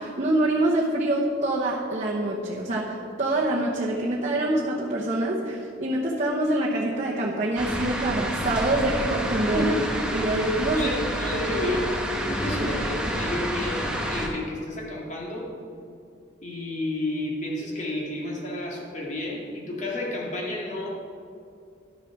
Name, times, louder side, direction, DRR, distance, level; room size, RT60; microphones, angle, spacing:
voice 1, 0.0-9.8 10.1-10.9, right 1 dB, 35° right, -3 dB, 1.0 m, -25 dB
sound 1, 7.6-14.3, equal, 5° right, 1.0 m, -29 dB
voice 2, 10.8-15.5 16.4-20.9, left 1 dB, 40° left, -3 dB, 2.2 m, -31 dB
11.5 x 6.7 x 5.9 m, 2.4 s
head